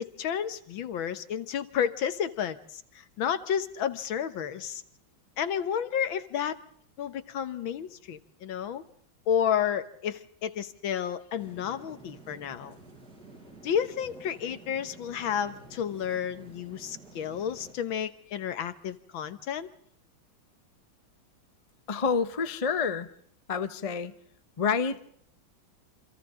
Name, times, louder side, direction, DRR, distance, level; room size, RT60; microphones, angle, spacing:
voice 1, 0.0-4.8 5.4-6.6 7.0-8.8 9.3-12.8 13.6-19.7, left 8 dB, 70° left, 12 dB, 1.9 m, -31 dB
sound 1, 11.4-17.7, right 3 dB, 50° right, 5.6 m, -50 dB
voice 2, 21.9-23.1 23.5-24.1 24.6-25.1, left 5 dB, 45° left, 11 dB, 0.4 m, -28 dB
28.0 x 26.0 x 3.8 m, 0.64 s
omnidirectional pair, 2.3 m